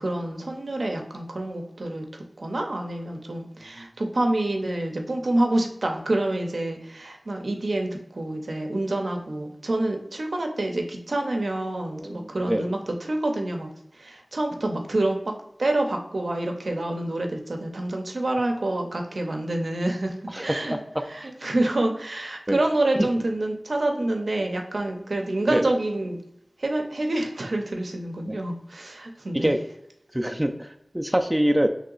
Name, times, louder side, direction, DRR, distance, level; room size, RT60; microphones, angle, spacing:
voice 1, 0.0-2.0 2.4-13.7 14.0-15.3 15.6-20.1 20.4-20.8 21.1-26.2 26.6-29.5, right 1 dB, 85° right, 3 dB, 0.5 m, -27 dB
voice 2, 11.9-12.7 20.3-20.8 21.4-21.5 22.5-22.6 23.0-23.1 25.5-25.7 28.3-28.4 29.3-29.6 30.1-31.7, right 1 dB, 15° right, 5 dB, 0.4 m, -25 dB
3.1 x 2.8 x 3.7 m, 0.77 s
wide cardioid pair, 45°, 0 cm